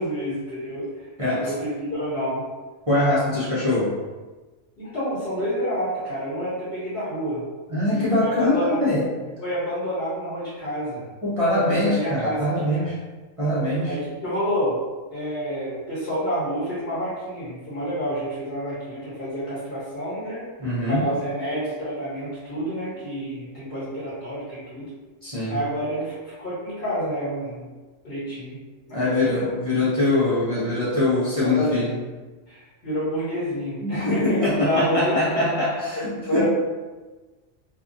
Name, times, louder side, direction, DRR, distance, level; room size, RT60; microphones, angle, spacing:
voice 1, 0.0-2.5 4.8-7.4 7.9-8.8 9.4-11.0 11.6-12.9 13.8-14.8 15.1-20.5 20.9-24.9 25.5-27.7 28.0-28.6 28.9-29.5 31.4-31.9 32.5-35.2 35.9-36.5, equal, 50° left, -10 dB, 1.0 m, -29 dB
voice 2, 1.2-1.5 2.9-4.0 7.7-9.1 11.2-13.0 13.4-14.0 20.6-21.1 25.2-25.6 28.9-32.0 33.8-36.5, left 1 dB, 40° right, -10 dB, 0.5 m, -23 dB
2.6 x 2.3 x 2.5 m, 1.3 s
omnidirectional pair, 1.4 m